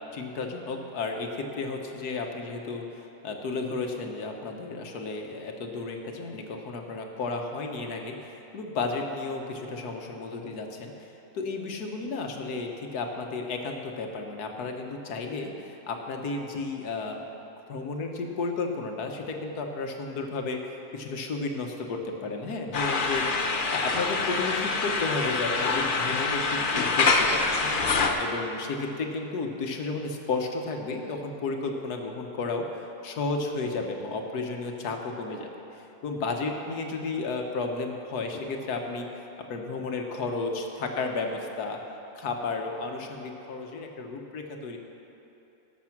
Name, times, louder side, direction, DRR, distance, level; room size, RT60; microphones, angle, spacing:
voice 1, 0.1-10.9 11.3-17.2 17.7-23.3 23.7-27.6 28.0-32.6 33.0-39.1 39.5-41.8 42.1-44.8, left 3 dB, 85° left, 3 dB, 1.6 m, -33 dB
sound 1, 22.7-28.1, left 4 dB, 40° left, 0.8 m, -25 dB
18.0 x 6.8 x 5.9 m, 3.0 s
omnidirectional pair, 1.6 m